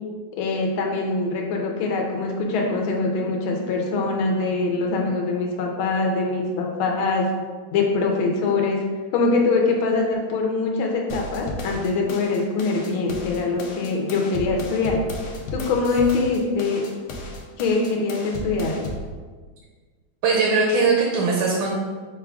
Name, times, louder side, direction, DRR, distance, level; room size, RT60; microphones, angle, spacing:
voice 1, 0.4-7.3 7.7-8.8 9.1-15.0 15.5-16.8 17.6-18.8, left 3 dB, 90° left, 0 dB, 1.4 m, -23 dB
sound 1, 11.1-19.1, left 1 dB, 70° left, 1.0 m, -34 dB
voice 2, 20.2-21.7, right 4 dB, 75° right, -1 dB, 1.3 m, -20 dB
5.4 x 2.3 x 3.5 m, 1.5 s
omnidirectional pair, 2.2 m